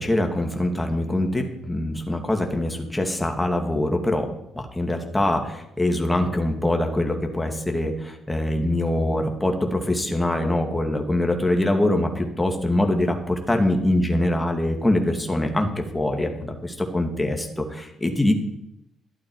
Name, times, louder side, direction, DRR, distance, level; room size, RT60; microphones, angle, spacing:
voice 1, 0.0-4.3 4.5-18.4, left 1 dB, 10° left, 3 dB, 2.1 m, -23 dB
12.5 x 11.5 x 4.8 m, 0.81 s
cardioid pair, 90°, 0 cm